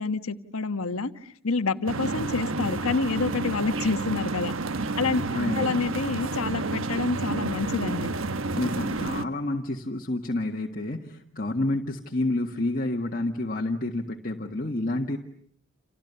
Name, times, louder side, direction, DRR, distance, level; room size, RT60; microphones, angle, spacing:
voice 1, 0.0-4.5 5.0-5.2 5.5-8.1, left 3 dB, 85° left, 10 dB, 1.4 m, -28 dB
sound 1, 1.9-9.3, right 3 dB, 70° right, 1.1 m, -30 dB
voice 2, 5.3-5.8 8.6-15.2, left 2 dB, 40° left, 1 dB, 1.7 m, -29 dB
30.0 x 28.5 x 6.9 m, 0.63 s
head